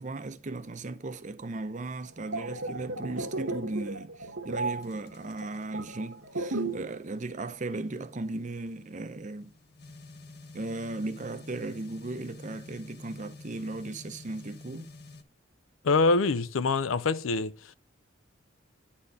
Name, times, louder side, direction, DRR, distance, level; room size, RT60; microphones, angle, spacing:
voice 1, 0.0-9.5 10.5-14.9, right 2 dB, 40° right, 0.6 m, -37 dB
sound 1, 2.1-7.0 7.2-7.5, right 2 dB, 80° right, 1.3 m, -34 dB
sound 2, 4.8-15.2, left 3 dB, 50° left, 0.9 m, -50 dB
voice 2, 15.8-17.5, left 3 dB, 80° left, 0.5 m, -24 dB
9.7 x 4.3 x 5.3 m
head